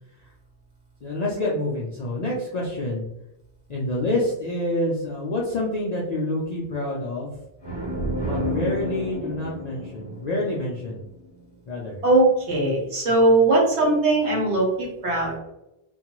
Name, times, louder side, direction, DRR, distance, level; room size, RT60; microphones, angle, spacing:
voice 1, 1.0-3.1 3.7-7.3 8.2-11.0 11.7-12.0, left 1 dB, 60° left, -4 dB, 0.4 m, -27 dB
sound 1, 7.6-11.3, equal, 25° left, 0.7 m, -31 dB
voice 2, 12.0-15.4, right 2 dB, 75° right, -3 dB, 1.2 m, -20 dB
2.5 x 2.3 x 2.9 m, 0.89 s
omnidirectional pair, 1.2 m